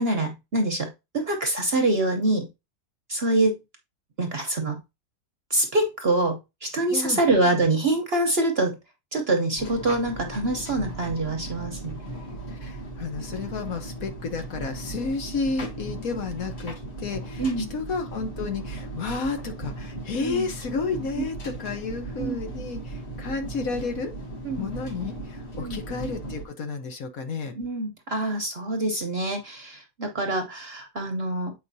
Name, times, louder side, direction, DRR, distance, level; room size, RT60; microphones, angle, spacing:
voice 1, 0.0-2.5 3.1-3.6 4.2-4.8 5.5-8.8 9.1-12.0 17.4-17.7 20.2-20.5 22.2-22.4 24.4-24.7 25.6-25.8 27.6-31.5, right 2 dB, 45° right, 0.9 m, -25 dB
voice 2, 6.9-7.2 12.5-24.1 24.6-27.6, left 4 dB, 60° left, 1.3 m, -31 dB
sound 1, 9.6-26.4, right 2 dB, 40° left, 1.7 m, -37 dB
7.7 x 4.8 x 2.7 m
omnidirectional pair, 1.8 m